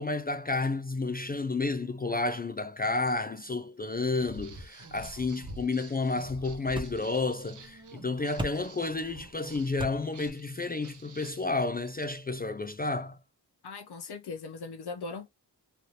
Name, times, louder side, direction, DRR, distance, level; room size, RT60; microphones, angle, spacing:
voice 1, 0.0-13.2, left 3 dB, 25° left, 0.3 m, -31 dB
Walk footsteps, 3.8-12.2, right 6 dB, 50° right, 0.8 m, -55 dB
sound 1, 4.1-5.7 6.0-10.3, right 1 dB, 75° right, 1.5 m, -48 dB
sound 2, 5.0-12.1, right 1 dB, 10° right, 1.0 m, -44 dB
voice 2, 13.6-15.3, left 4 dB, 75° left, 0.7 m, -39 dB
3.2 x 2.6 x 2.7 m
cardioid pair, 50°, 40 cm